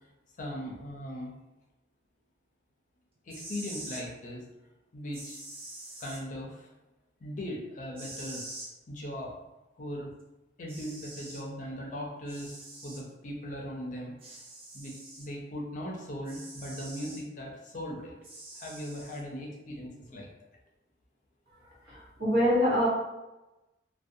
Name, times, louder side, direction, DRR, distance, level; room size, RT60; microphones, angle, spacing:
voice 1, 0.4-1.4 3.3-4.4 4.9-5.4 6.0-6.7 7.2-8.5 8.9-9.3 9.8-10.1 10.6-14.1 14.7-18.2 18.5-20.3, equal, 45° left, -1 dB, 0.5 m, -39 dB
sound 1, 3.2-4.0 5.1-6.2 8.0-8.7 10.2-10.3 10.7-11.4 12.3-13.0 14.2-15.3 16.2-17.2 18.2-19.2, right 2 dB, 30° right, 0.4 m, -45 dB
voice 2, 21.9-22.9, equal, 60° right, -6 dB, 1.0 m, -25 dB
2.5 x 2.1 x 2.6 m, 1.0 s
head